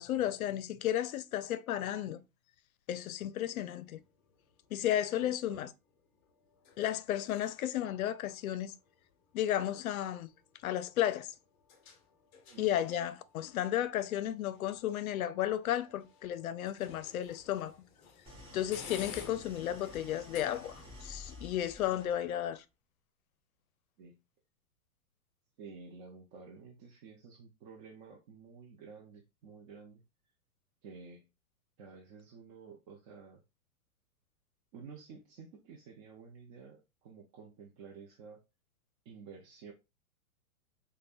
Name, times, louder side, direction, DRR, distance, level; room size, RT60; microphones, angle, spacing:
voice 1, 0.0-2.2 2.9-4.0 4.7-5.7 6.8-8.7 9.3-10.3 10.6-11.3 12.6-17.8 18.5-22.6, left 11 dB, 70° left, 0.5 m, -33 dB
sound 1, 3.5-21.0, left 6 dB, 25° left, 0.6 m, -55 dB
voice 2, 4.7-5.6 12.5-12.7 24.0-24.2 25.6-30.0 30.8-31.3 31.8-33.4 34.7-38.4 39.1-39.7, right 5 dB, 30° right, 0.6 m, -52 dB
Idling, 18.3-22.5, left 2 dB, 10° right, 1.1 m, -51 dB
5.1 x 2.2 x 2.4 m
hypercardioid pair, 120°, 44 cm